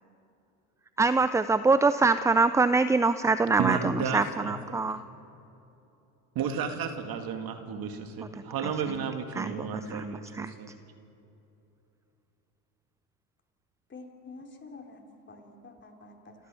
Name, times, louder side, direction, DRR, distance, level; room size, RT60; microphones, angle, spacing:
voice 1, 1.0-5.0 8.2-8.3 8.6-9.0 9.3-10.5, right 3 dB, 5° right, 13 dB, 0.4 m, -25 dB
voice 2, 3.6-4.5 6.3-10.7, right 6 dB, 55° right, 6 dB, 2.3 m, -33 dB
voice 3, 13.9-15.0 15.3-16.4, left 3 dB, 25° left, 1 dB, 3.8 m, -47 dB
28.5 x 13.5 x 7.7 m, 2.9 s
supercardioid pair, 85°, 43 cm